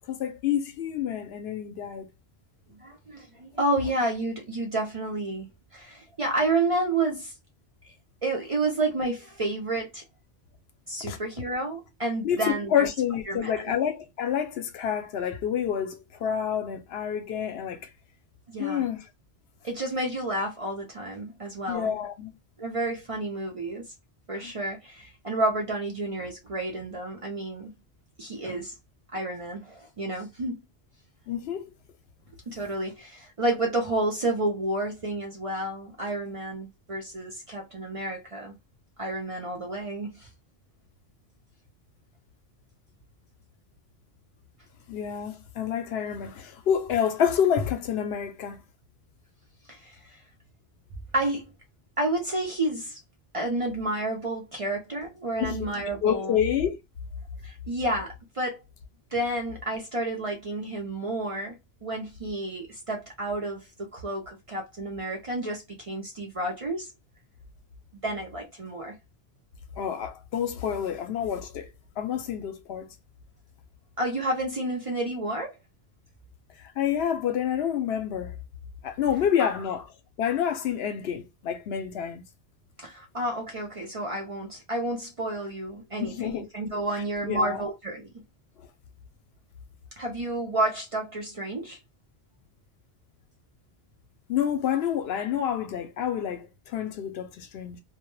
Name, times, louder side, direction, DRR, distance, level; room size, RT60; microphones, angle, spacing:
voice 1, 0.1-2.1 11.0-11.2 12.2-17.9 18.6-19.1 21.7-22.3 24.4-24.5 31.3-31.7 44.9-48.6 55.4-55.7 56.0-56.8 69.8-71.7 72.0-72.9 76.8-78.3 78.8-79.9 80.2-82.2 86.0-86.5 87.2-87.6 94.3-97.8, left 8 dB, 75° left, 0.8 m, -28 dB
voice 2, 2.7-7.3 8.2-10.0 10.9-12.9 13.3-13.6 18.5-18.8 19.6-21.9 22.6-23.9 24.3-27.7 28.2-28.8 29.1-30.6 32.5-38.5 39.0-40.3 49.7-50.2 51.1-51.5 52.0-53.0 53.3-56.4 57.4-58.6 59.1-61.6 61.8-66.9 68.0-69.0 74.0-75.6 79.4-79.5 82.8-88.1 90.0-91.8, right 2 dB, 45° right, 0.5 m, -30 dB
2.1 x 2.1 x 3.0 m
omnidirectional pair, 1.1 m